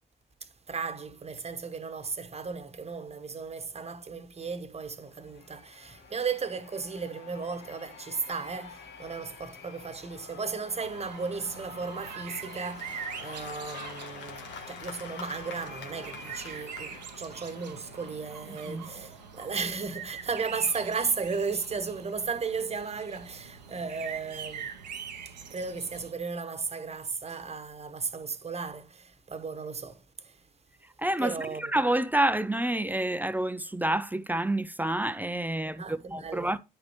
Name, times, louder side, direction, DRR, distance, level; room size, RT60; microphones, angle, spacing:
voice 1, 0.4-24.7 25.2-30.4 31.2-31.7 35.6-36.5, right 5 dB, 30° right, 1.1 m, -35 dB
Cheering / Applause / Crowd, 4.9-19.7, left 6 dB, 60° left, 1.3 m, -47 dB
sound 1, 10.8-26.1, right 7 dB, 90° right, 0.7 m, -43 dB
voice 2, 31.0-36.6, right 1 dB, 10° right, 0.5 m, -28 dB
10.5 x 5.1 x 3.1 m
hypercardioid pair, 45°, 21 cm